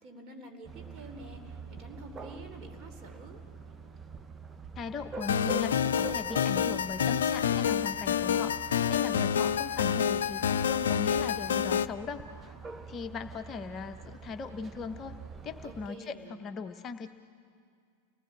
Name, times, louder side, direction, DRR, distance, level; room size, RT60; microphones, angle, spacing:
voice 1, 0.0-3.4 15.6-16.3, right 1 dB, 30° right, 5 dB, 3.5 m, -48 dB
sound 1, 0.6-15.9, right 4 dB, 15° right, 0.9 m, -45 dB
voice 2, 4.8-12.5 12.9-15.2 15.4-17.1, left 5 dB, 25° left, 7 dB, 0.8 m, -39 dB
sound 2, 5.2-11.9, left 8 dB, 65° left, 0.5 m, -28 dB
29.5 x 18.5 x 8.6 m, 2.2 s
figure-of-eight pair, 90°, 0 cm